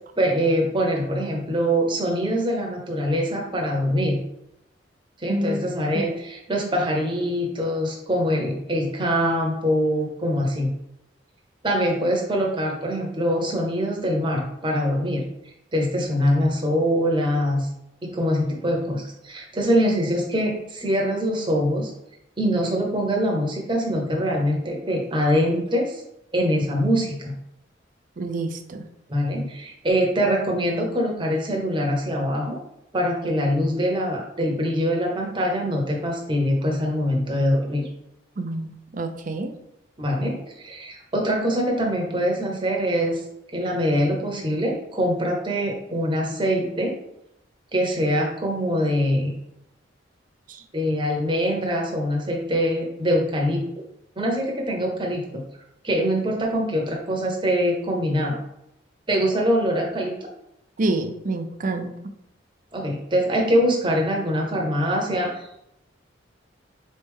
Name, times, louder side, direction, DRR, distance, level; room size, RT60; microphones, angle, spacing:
voice 1, 0.2-4.2 5.2-10.7 11.6-15.2 15.7-17.7 18.0-21.9 22.4-26.0 26.3-27.4 29.1-32.6 32.9-37.9 40.0-43.2 43.5-47.0 47.7-49.3 50.7-53.6 54.2-55.4 55.8-58.4 59.1-60.2 62.7-65.5, equal, 25° right, -1 dB, 0.9 m, -23 dB
voice 2, 5.3-5.6 5.9-6.1 28.2-28.9 38.4-39.5 50.5-50.6 60.8-61.9, right 2 dB, 45° right, 6 dB, 0.5 m, -28 dB
4.0 x 3.3 x 3.6 m, 0.81 s
head